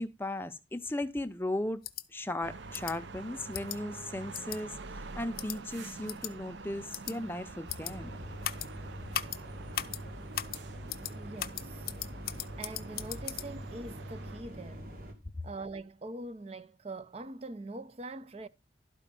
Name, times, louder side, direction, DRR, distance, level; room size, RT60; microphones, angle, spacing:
voice 1, 0.0-1.8 2.1-4.8 5.1-8.1, left 1 dB, 10° left, 0.6 m, -36 dB
sound 1, 1.8-2.0 2.7-2.9 3.5-3.8 4.3-4.6 5.4-5.6 6.1-6.3 6.9-7.1 7.7-7.9 8.4-8.7 9.1-9.4 9.7-10.0 10.3-10.6 10.9-11.1 11.4-13.5, left 11 dB, 55° left, 0.6 m, -37 dB
sound 2, 2.4-14.4, right 4 dB, 90° right, 0.7 m, -47 dB
sound 3, 7.8-15.1, equal, 55° right, 2.2 m, -44 dB
voice 2, 11.1-11.9 12.6-14.9 15.4-18.5, right 2 dB, 35° right, 0.5 m, -43 dB
12.0 x 5.1 x 5.3 m
head